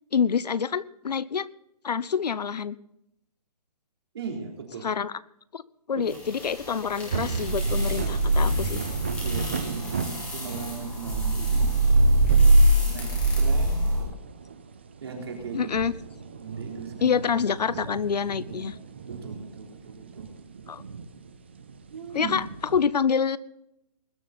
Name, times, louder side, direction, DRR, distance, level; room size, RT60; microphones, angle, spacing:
voice 1, 0.1-1.5 1.8-2.8 4.8-5.1 5.5-5.6 5.9-8.8 15.5-15.9 17.0-18.8 20.7-20.8 22.1-22.4 22.7-23.4, left 6 dB, 85° left, 19 dB, 0.8 m, -26 dB
voice 2, 4.1-4.9 5.9-6.2 6.9-7.0 9.2-11.8 12.9-13.1 13.4-14.0 15.0-15.7 16.4-17.2 17.7-17.8 18.4-18.7 19.0-20.3 21.9-22.4, right 5 dB, 40° right, 0 dB, 3.8 m, -38 dB
sound 1, 6.1-14.0, right 1 dB, 5° left, 2.3 m, -23 dB
sound 2, 7.1-22.8, right 5 dB, 15° right, 0.5 m, -36 dB
20.5 x 11.0 x 4.1 m, 0.79 s
hypercardioid pair, 175°, 20 cm